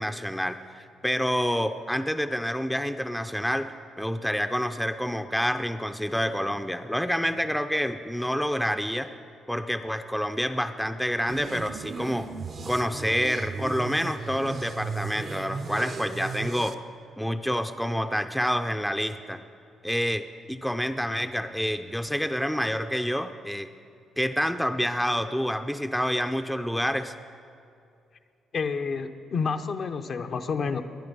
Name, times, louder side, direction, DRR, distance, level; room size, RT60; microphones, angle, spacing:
voice 1, 0.0-9.1 9.5-12.3 12.7-16.8 17.2-19.4 19.8-23.7 24.2-27.1, equal, ahead, 8 dB, 0.6 m, -28 dB
sound 1, 11.3-16.8, right 5 dB, 50° right, 0.7 m, -36 dB
voice 2, 28.5-30.8, left 5 dB, 55° left, 7 dB, 0.8 m, -29 dB
21.0 x 10.0 x 5.3 m, 2.5 s
cardioid pair, 90°, 0 cm